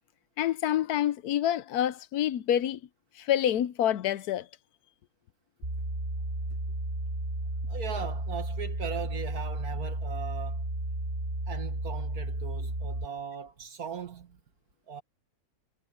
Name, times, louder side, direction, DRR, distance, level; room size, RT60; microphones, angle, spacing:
voice 1, 0.4-2.8 3.2-4.5, left 11 dB, 80° left, 1.2 m, -27 dB
sound 1, 5.6-13.1, right 1 dB, 40° right, 5.4 m, -33 dB
voice 2, 7.6-10.7 11.5-14.4 14.9-15.0, right 7 dB, 70° right, 2.3 m, -39 dB
omnidirectional pair, 1.6 m